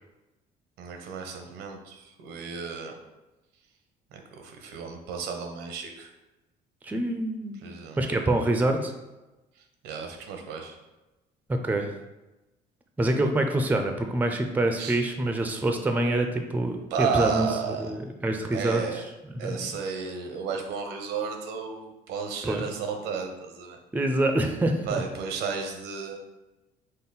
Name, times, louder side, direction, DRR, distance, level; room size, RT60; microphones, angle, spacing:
voice 1, 0.8-2.9 4.1-6.1 7.6-8.0 9.8-10.8 14.8-15.0 16.9-17.9 18.5-19.0 19.4-23.8 24.9-26.2, right 5 dB, 85° right, 4 dB, 0.7 m, -33 dB
voice 2, 6.8-7.6 8.0-8.9 11.5-11.9 13.0-17.5 17.8-18.8 19.3-19.6 22.4-22.6 23.9-25.0, right 1 dB, 10° right, 5 dB, 0.4 m, -26 dB
5.4 x 2.1 x 4.0 m, 1.0 s
cardioid pair, 110°, 17 cm